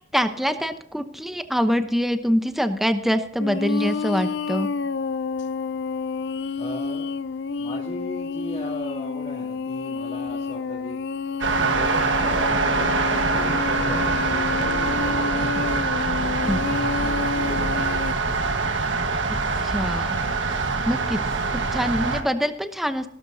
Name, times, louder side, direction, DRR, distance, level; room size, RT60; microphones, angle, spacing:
voice 1, 0.1-4.7 16.4-16.6 19.6-20.2 20.8-21.2 21.5-23.1, equal, ahead, 8 dB, 0.9 m, -24 dB
sound 1, 3.4-18.1, left 4 dB, 65° left, 0.5 m, -29 dB
voice 2, 6.6-7.1 7.5-11.0 11.5-12.9 13.2-15.8 16.3-16.6 17.0-18.3, left 1 dB, 25° left, -6 dB, 2.9 m, -38 dB
sound 2, 11.4-22.2, right 4 dB, 75° right, 1.5 m, -24 dB
17.5 x 13.0 x 2.8 m, 0.73 s
head